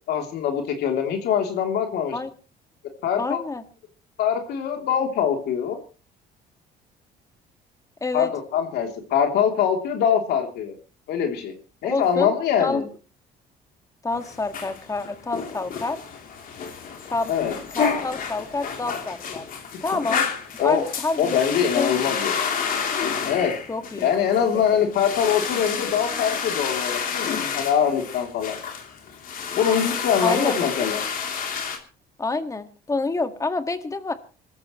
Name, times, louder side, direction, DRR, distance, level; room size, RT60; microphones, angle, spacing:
voice 1, 0.1-2.1 3.0-3.4 4.2-5.8 8.1-10.7 11.1-11.5 11.8-12.8 17.3-17.5 20.6-20.8 21.2-22.5 23.2-23.5 24.0-28.6 29.6-31.0, left 8 dB, 75° left, 4 dB, 3.2 m, -23 dB
voice 2, 3.2-3.6 8.0-8.3 11.8-12.3 12.6-12.8 14.0-16.0 17.1-17.3 17.7-19.4 19.8-20.3 20.5-22.0 23.7-24.8 30.2-30.7 32.2-34.1, left 3 dB, 20° left, 8 dB, 1.9 m, -28 dB
sound 1, 14.1-31.8, left 6 dB, 55° left, 3.3 m, -30 dB
26.5 x 14.0 x 3.1 m, 0.35 s
cardioid pair, 110°, 17 cm